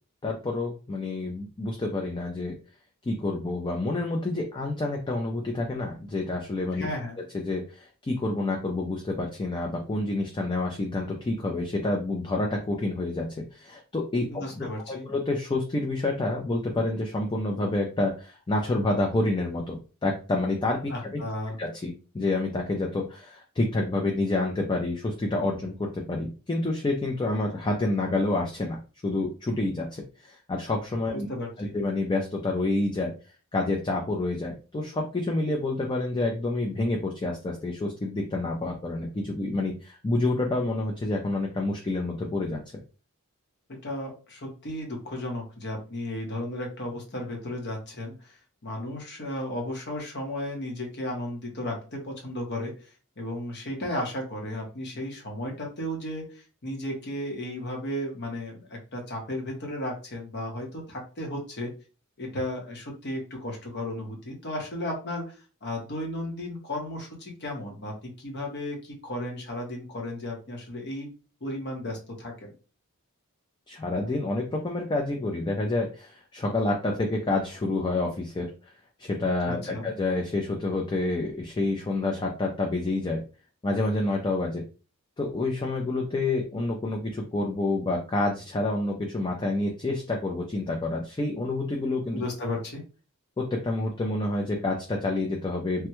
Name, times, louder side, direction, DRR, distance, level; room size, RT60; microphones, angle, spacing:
voice 1, 0.2-2.5 3.0-6.9 7.3-13.3 13.5-21.2 21.6-31.3 31.6-33.1 33.5-42.6 73.7-78.5 79.0-83.2 83.6-84.6 85.2-92.2 93.4-95.9, left 2 dB, 20° left, 1 dB, 0.4 m, -28 dB
voice 2, 6.7-7.2 14.3-15.1 20.9-21.6 31.1-31.7 43.7-52.9 53.2-61.7 62.2-71.1 71.4-72.5 79.4-79.9 92.1-92.8, left 1 dB, 50° left, 1 dB, 1.0 m, -34 dB
3.3 x 2.2 x 2.9 m, 0.35 s
head